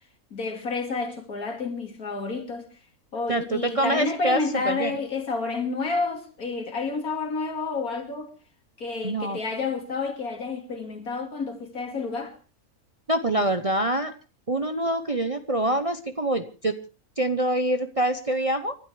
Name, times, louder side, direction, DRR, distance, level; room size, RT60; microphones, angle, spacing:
voice 1, 0.3-2.7 3.1-8.3 8.8-12.3, left 4 dB, 75° left, 3.0 m, -30 dB
voice 2, 3.3-5.0 9.0-9.4 13.1-14.1 14.5-16.8 17.2-18.8, right 1 dB, 30° right, 0.7 m, -25 dB
29.5 x 12.5 x 3.3 m
omnidirectional pair, 1.5 m